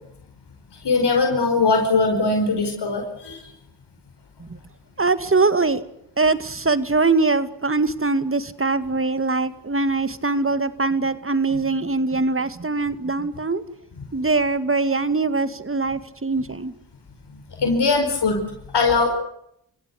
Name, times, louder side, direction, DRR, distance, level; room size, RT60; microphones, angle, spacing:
voice 1, 0.8-3.4 17.6-18.4 18.7-19.1, left 3 dB, 70° left, 3 dB, 4.9 m, -20 dB
voice 2, 5.0-5.8 6.2-13.6 14.1-16.7, right 3 dB, 30° right, 13 dB, 2.1 m, -22 dB
28.0 x 16.5 x 8.3 m, 0.74 s
cardioid pair, 40°, 41 cm